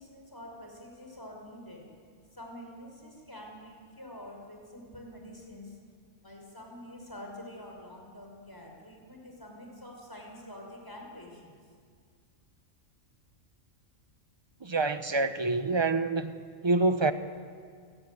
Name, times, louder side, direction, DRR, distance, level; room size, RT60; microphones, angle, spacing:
voice 1, 0.0-1.9 2.3-5.8 6.2-11.6, left 1 dB, 15° left, 0 dB, 5.5 m, -47 dB
voice 2, 14.6-16.3 16.6-17.1, right 3 dB, 20° right, 10 dB, 0.9 m, -26 dB
29.0 x 17.0 x 9.5 m, 2.1 s
omnidirectional pair, 1.5 m